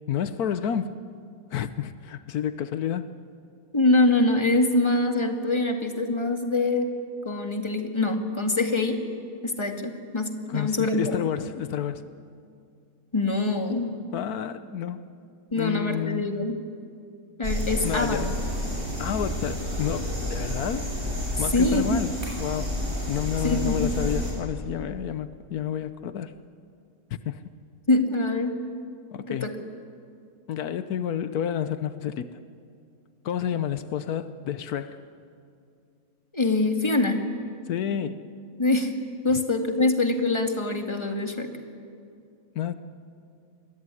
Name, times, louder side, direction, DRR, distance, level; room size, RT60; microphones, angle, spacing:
voice 1, 0.1-1.0 1.5-3.1 10.5-12.0 14.1-15.0 15.6-16.4 17.8-18.4 19.0-20.9 21.4-22.8 23.1-26.3 27.1-27.4 29.1-29.5 30.5-32.4 33.2-35.0 37.7-38.3 39.3-39.4 42.5-42.7, left 9 dB, 80° left, 12 dB, 1.3 m, -30 dB
voice 2, 3.7-6.9 7.2-9.0 9.4-11.2 13.1-14.0 15.5-16.6 17.4-18.3 21.5-22.0 23.4-24.0 27.9-28.6 29.3-29.5 36.3-37.3 38.6-38.9 39.2-41.5, left 2 dB, 20° left, 4 dB, 2.1 m, -24 dB
sound 1, 17.4-24.3, equal, 35° right, 7.4 m, -30 dB
28.0 x 21.5 x 9.8 m, 2.4 s
omnidirectional pair, 1.6 m